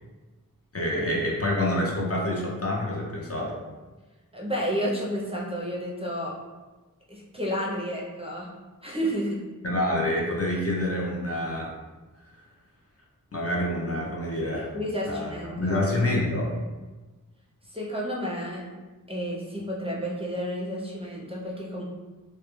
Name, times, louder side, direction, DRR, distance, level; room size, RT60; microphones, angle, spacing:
voice 1, 0.7-3.6 9.6-11.7 13.3-14.7 15.1-15.3 15.6-16.6, left 1 dB, 45° left, -2 dB, 0.5 m, -27 dB
voice 2, 4.3-6.4 7.1-8.5 8.8-9.4 14.7-15.8 17.7-18.6 19.1-21.8, equal, 15° right, -4 dB, 0.5 m, -31 dB
2.2 x 2.1 x 2.9 m, 1.2 s
wide cardioid pair, 40°, 33 cm